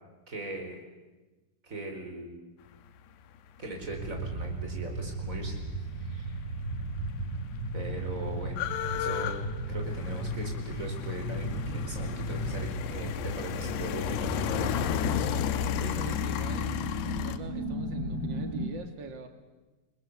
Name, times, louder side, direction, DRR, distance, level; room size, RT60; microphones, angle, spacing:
voice 1, 0.3-0.8 1.6-2.4 3.6-6.4 7.7-8.6 8.9-9.3 9.7-14.8, right 1 dB, 20° right, 2 dB, 4.5 m, -40 dB
sound 1, 3.7-18.7, right 1 dB, 35° right, 5.1 m, -35 dB
sound 2, 6.7-6.8 7.0-17.4, left 10 dB, 80° left, 3.1 m, -33 dB
voice 2, 15.8-16.8 17.1-19.3, right 4 dB, 90° right, 6 dB, 1.0 m, -43 dB
30.0 x 20.5 x 7.0 m, 1.2 s
omnidirectional pair, 4.9 m